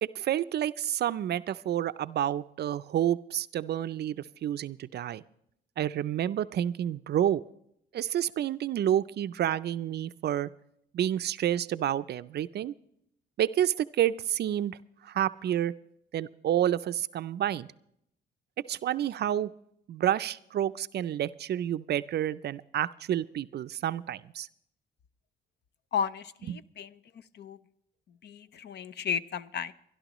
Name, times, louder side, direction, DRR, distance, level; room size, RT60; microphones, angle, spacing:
voice 1, 0.0-5.2 5.8-7.4 7.9-10.5 10.9-12.7 13.4-14.8 15.0-15.7 16.1-17.7 18.7-19.5 19.9-24.5 26.5-26.6, right 11 dB, 55° right, 15 dB, 0.5 m, -29 dB
voice 2, 25.9-26.9 27.3-27.6 28.2-29.7, left 7 dB, 60° left, 15 dB, 0.7 m, -33 dB
24.0 x 11.5 x 3.0 m, 0.74 s
cardioid pair, 90°, 20 cm